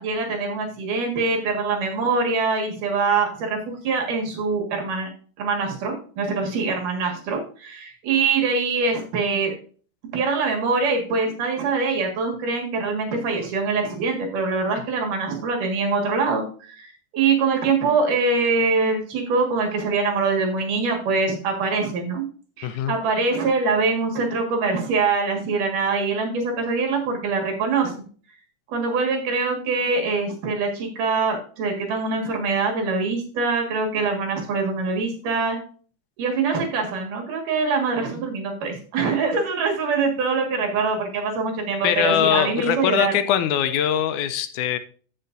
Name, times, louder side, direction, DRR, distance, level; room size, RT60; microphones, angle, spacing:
voice 1, 0.0-5.1 5.4-9.5 10.1-22.2 22.6-27.9 28.7-35.6 36.2-43.1, right 4 dB, 80° right, 2 dB, 3.3 m, -24 dB
voice 2, 22.6-22.9 41.8-44.8, left 10 dB, 80° left, 10 dB, 2.0 m, -22 dB
14.5 x 5.6 x 2.6 m, 0.42 s
omnidirectional pair, 3.7 m